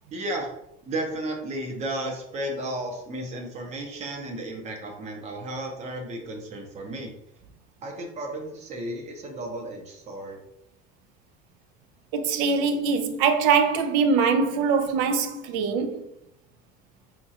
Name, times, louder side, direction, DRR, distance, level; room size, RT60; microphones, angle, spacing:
voice 1, 0.1-7.1 7.8-10.4, right 1 dB, 35° right, 0.8 m, -33 dB
voice 2, 12.1-16.1, right 5 dB, 75° right, 0.5 m, -23 dB
4.3 x 2.4 x 2.8 m
cardioid pair, 140°, 20 cm